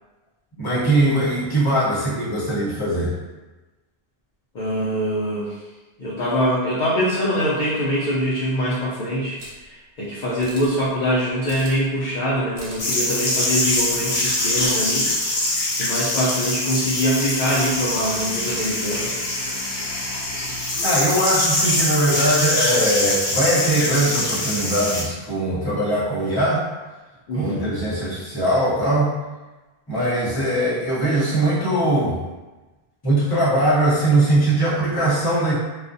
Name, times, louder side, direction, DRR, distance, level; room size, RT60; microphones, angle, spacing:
voice 1, 0.6-3.1 20.6-26.7 27.3-29.1 29.9-32.2 33.0-35.5, right 1 dB, 25° left, -10 dB, 0.8 m, -21 dB
voice 2, 4.5-5.6 6.0-15.1 15.4-19.1 27.3-27.7, equal, 55° left, -8 dB, 0.6 m, -24 dB
sound 1, 9.4-9.7 10.4-10.8 11.5-11.9 12.6-12.9 13.6-14.0 14.5-14.7, right 2 dB, 85° right, 0.9 m, -40 dB
sound 2, 12.8-25.0, left 1 dB, 75° left, 1.0 m, -23 dB
2.3 x 2.1 x 2.5 m, 1.2 s
omnidirectional pair, 1.1 m